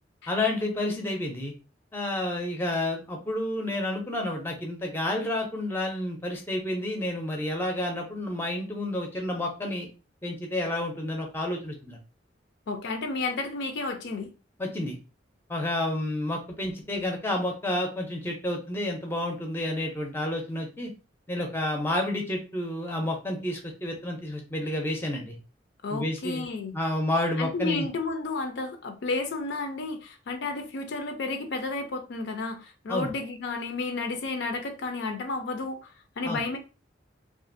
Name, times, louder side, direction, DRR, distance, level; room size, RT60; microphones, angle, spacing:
voice 1, 0.3-1.5 1.9-9.9 10.2-12.0 14.6-15.0 15.5-20.9 21.3-25.4 25.9-26.5 26.7-27.9 32.9-33.1 36.2-36.4, left 1 dB, 10° left, 0.5 m, -30 dB
voice 2, 12.7-14.3 25.8-26.8 27.4-36.6, left 3 dB, 60° left, 0.4 m, -32 dB
2.5 x 2.4 x 2.5 m
head